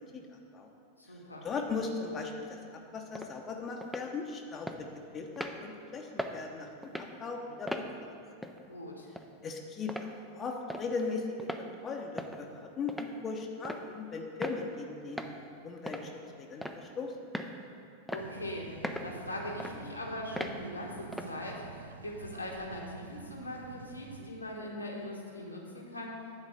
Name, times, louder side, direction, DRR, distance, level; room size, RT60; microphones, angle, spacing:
voice 1, 0.1-0.7 1.1-4.9 5.1-8.1 9.4-15.3 15.6-17.1, left 4 dB, 25° left, 2 dB, 0.8 m, -38 dB
voice 2, 1.0-1.5 8.7-9.1 18.1-18.7 19.0-26.3, left 1 dB, 85° left, -2 dB, 1.4 m, -41 dB
sound 1, 3.1-3.3 3.8-4.1 4.7-4.8 5.4-5.6 6.2-6.4 6.8-7.1 7.7-7.9 8.4-8.6 9.2-9.3 9.9-10.1 10.7-10.9 11.4-11.6 12.2-12.4 12.9-13.1 13.6-13.8 14.4-14.6 15.2-15.3 15.9-16.1 16.6-16.9 17.3-17.5 18.1-18.3 18.8-19.1 19.6-19.7 20.4-20.6 21.1-21.3, equal, ahead, 0.5 m, -38 dB
sound 2, 18.2-24.3, right 5 dB, 70° right, 0.4 m, -48 dB
9.7 x 4.1 x 7.3 m, 2.6 s
figure-of-eight pair, 90°, 0 cm